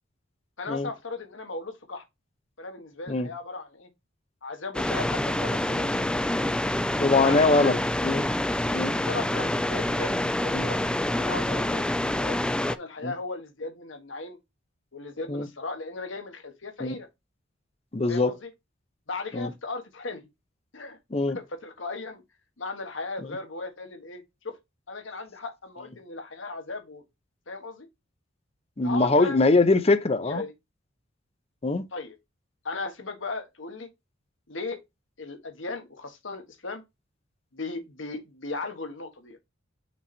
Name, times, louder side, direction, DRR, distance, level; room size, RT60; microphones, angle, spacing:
voice 1, 0.6-2.0 2.6-3.9 4.4-5.9 7.2-7.7 8.6-10.8 11.2-11.9 12.2-14.4 14.9-17.1 18.1-18.5 19.1-20.3 20.7-21.0 21.3-22.2 22.6-24.6 24.9-27.0 27.5-27.9 28.8-29.4 30.2-30.5 31.9-32.2 32.6-33.9 34.5-34.8 35.2-36.8 37.5-39.4, left 3 dB, 70° left, 1.4 m, -36 dB
sound 1, 4.7-12.8, left 1 dB, 5° left, 0.3 m, -27 dB
voice 2, 7.0-8.3 8.7-9.0 10.5-10.7 13.0-13.1 15.3-15.5 16.8-17.0 17.9-18.3 19.3-19.5 21.1-21.4 28.8-30.4 31.6-31.8, left 3 dB, 30° left, 0.7 m, -23 dB
6.1 x 4.0 x 4.2 m
head